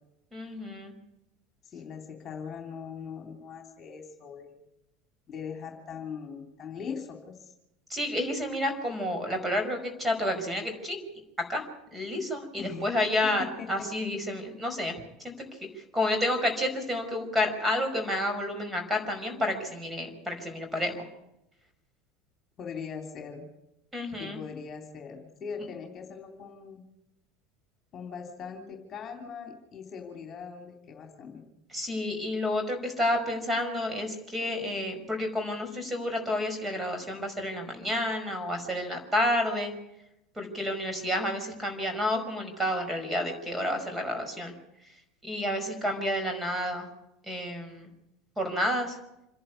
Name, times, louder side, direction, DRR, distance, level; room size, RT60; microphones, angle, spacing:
voice 1, 0.3-0.9 7.9-11.0 11.5-11.6 11.9-14.9 15.2-15.3 15.7-21.0 23.9-24.4 31.7-39.7 40.3-44.5 45.2-46.9 47.2-47.9 48.4-49.0, left 1 dB, 10° right, 5 dB, 5.2 m, -30 dB
voice 2, 1.7-4.5 5.3-7.5 12.6-13.0 13.4-13.7 22.6-23.5 24.2-26.8 27.9-31.4, left 6 dB, 35° left, 3 dB, 3.2 m, -40 dB
27.0 x 11.0 x 9.5 m, 0.87 s
figure-of-eight pair, 75°, 0 cm